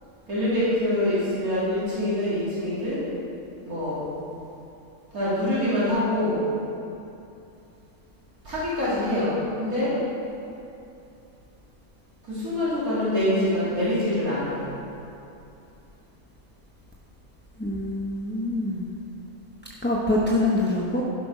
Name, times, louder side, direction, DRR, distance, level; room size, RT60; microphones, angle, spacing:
voice 1, 0.3-3.0 3.6-4.1 5.1-6.4 8.4-9.9 12.2-14.7, left 1 dB, 90° right, -10 dB, 2.9 m, -25 dB
voice 2, 17.6-18.9 19.8-21.0, left 2 dB, 10° left, -6 dB, 0.6 m, -25 dB
12.0 x 6.0 x 5.2 m, 2.8 s
omnidirectional pair, 1.5 m